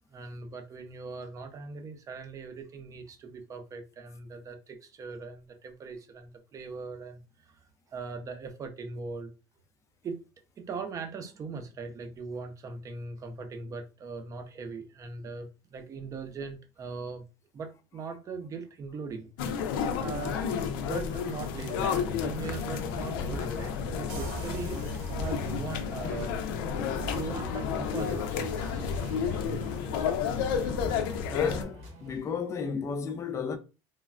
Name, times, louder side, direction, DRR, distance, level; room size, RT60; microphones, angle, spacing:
voice 1, 0.1-9.3 10.0-10.2 10.6-17.2 17.5-19.3 19.8-24.8 25.2-26.4 27.0-28.3 28.8-29.0, right 4 dB, 30° right, 0.6 m, -40 dB
sound 1, 19.4-31.6, left 7 dB, 85° left, 0.5 m, -31 dB
sound 2, 22.0-32.2, equal, 85° right, 1.4 m, -43 dB
sound 3, 24.1-27.6, right 3 dB, 65° right, 0.8 m, -44 dB
voice 2, 31.3-33.6, left 5 dB, 25° left, 0.4 m, -33 dB
3.1 x 2.2 x 2.4 m
supercardioid pair, 120°, 11 cm